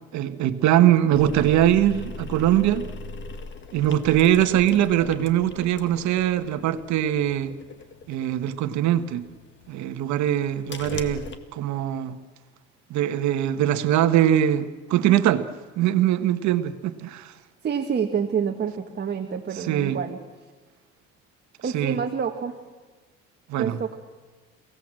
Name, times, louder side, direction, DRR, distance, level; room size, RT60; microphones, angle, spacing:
voice 1, 0.1-2.9 3.7-7.5 8.1-9.3 9.7-11.2 11.5-12.2 12.9-15.5 15.8-17.3 19.7-20.0 21.7-22.0 23.5-23.8, right 11 dB, 70° right, 9 dB, 1.3 m, -22 dB
sound 1, 1.1-11.4, left 3 dB, 40° left, 1.9 m, -40 dB
voice 2, 17.6-20.2 21.6-22.6 23.6-24.0, right 7 dB, 35° right, 4 dB, 1.7 m, -27 dB
29.5 x 17.5 x 7.6 m, 1.3 s
cardioid pair, 120°, 29 cm